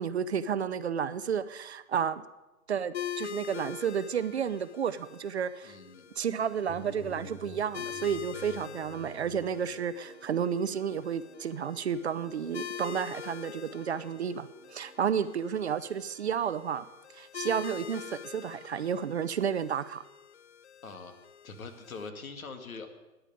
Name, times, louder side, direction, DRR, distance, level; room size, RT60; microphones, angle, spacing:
voice 1, 0.0-2.2 2.7-5.8 6.2-16.9 17.1-20.0, right 7 dB, 50° right, 13 dB, 0.6 m, -31 dB
sound 1, 2.9-22.1, left 9 dB, 50° left, 0.5 m, -44 dB
voice 2, 5.6-6.1 20.8-21.1 21.4-22.9, left 4 dB, 70° left, 6 dB, 2.1 m, -43 dB
sound 2, 6.7-16.1, left 2 dB, 25° left, 1.5 m, -51 dB
10.0 x 8.9 x 9.1 m, 1.1 s
hypercardioid pair, 160°, 43 cm